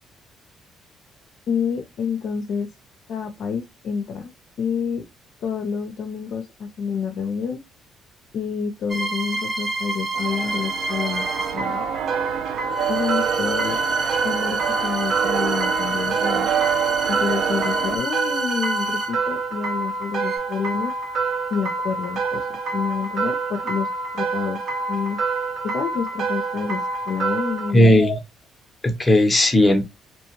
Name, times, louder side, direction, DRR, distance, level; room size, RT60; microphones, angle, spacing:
voice 1, 1.5-2.7 3.1-4.3 4.6-5.0 5.4-7.6 8.3-11.2 11.5-11.8 12.9-13.8 14.2-16.5 17.1-20.9 21.5-23.9 24.1-24.6 24.9-25.2 25.6-28.0, left 6 dB, 65° left, 0.5 m, -28 dB
sound 1, 8.9-11.7 12.7-19.3 20.2-20.4, right 3 dB, 25° right, 0.8 m, -28 dB
sound 2, 10.1-18.0, right 9 dB, 80° right, 0.3 m, -27 dB
sound 3, 11.6-27.7, right 4 dB, 60° right, 0.7 m, -27 dB
voice 2, 27.7-28.2 28.8-29.8, left 1 dB, 15° left, 0.8 m, -16 dB
2.8 x 2.2 x 3.0 m
cardioid pair, 90°, 0 cm